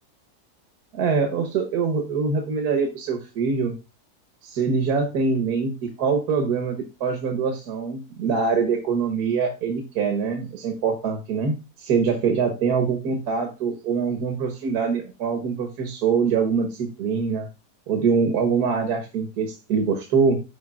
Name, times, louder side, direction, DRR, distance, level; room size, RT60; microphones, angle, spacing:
voice 1, 0.9-3.7 4.4-17.5 17.9-20.4, right 5 dB, 75° right, 3 dB, 1.7 m, -24 dB
14.0 x 4.8 x 2.4 m, 0.28 s
omnidirectional pair, 1.7 m